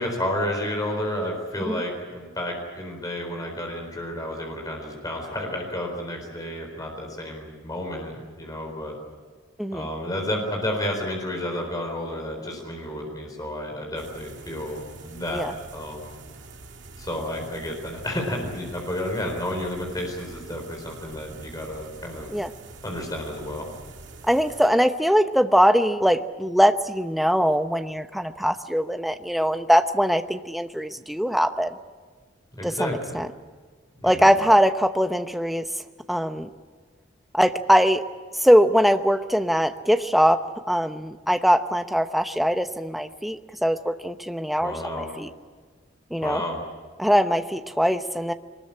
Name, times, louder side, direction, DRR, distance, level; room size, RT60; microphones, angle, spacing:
voice 1, 0.0-9.0 9.7-16.1 17.0-22.3 22.8-23.7 32.6-33.2 34.0-34.3 44.6-45.1 46.2-46.6, left 1 dB, 20° left, 2 dB, 4.2 m, -31 dB
sound 1, 13.9-24.7, right 3 dB, 60° right, 2.5 m, -45 dB
voice 2, 24.3-31.7 32.6-33.3 34.0-35.6 36.1-36.5 37.3-38.0 38.3-45.3 46.1-46.4 47.0-48.3, equal, ahead, 7 dB, 0.8 m, -21 dB
22.5 x 20.5 x 8.9 m, 1.5 s
head